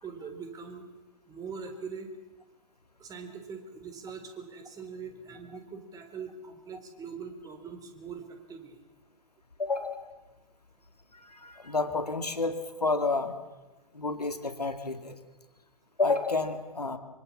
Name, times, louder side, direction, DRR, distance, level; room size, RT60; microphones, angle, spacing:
voice 1, 0.0-0.9 1.3-2.1 3.0-8.8, right 5 dB, 20° right, 6 dB, 3.7 m, -42 dB
voice 2, 9.6-10.1 11.1-13.3 13.9-15.2 16.0-17.0, left 3 dB, 85° left, 9 dB, 2.3 m, -30 dB
25.0 x 24.5 x 7.3 m, 1.1 s
figure-of-eight pair, 115°, 20 cm